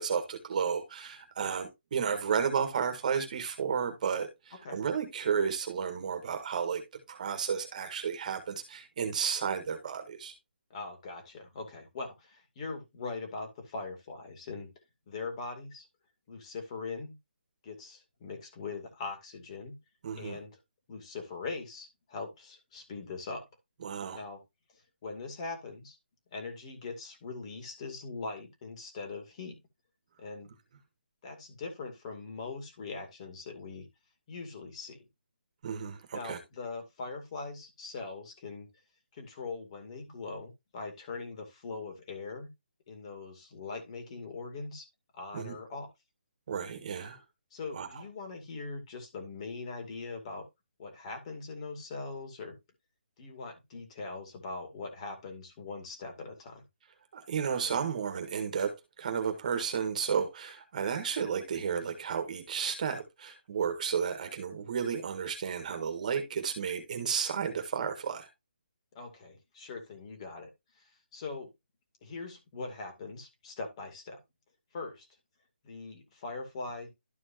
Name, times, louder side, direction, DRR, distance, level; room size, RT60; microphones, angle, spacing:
voice 1, 0.0-6.8 7.1-10.3 20.0-20.4 23.8-24.2 35.6-36.4 45.3-45.6 46.5-47.2 47.7-47.9 57.1-68.3, right 7 dB, 45° right, 1.6 m, -32 dB
voice 2, 10.7-14.7 15.1-15.9 16.3-17.1 17.6-19.8 20.2-20.6 20.9-23.5 24.1-24.4 25.0-26.0 26.3-29.6 30.2-30.5 31.2-33.9 34.3-35.0 36.1-38.7 39.1-42.5 42.9-44.9 45.1-45.9 47.5-50.4 50.8-52.6 53.2-56.6 68.9-70.5 70.8-71.5 72.0-74.2 74.7-75.1 75.6-76.9, left 3 dB, 35° left, 2.5 m, -41 dB
12.5 x 4.6 x 2.9 m
hypercardioid pair, 160°, 6 cm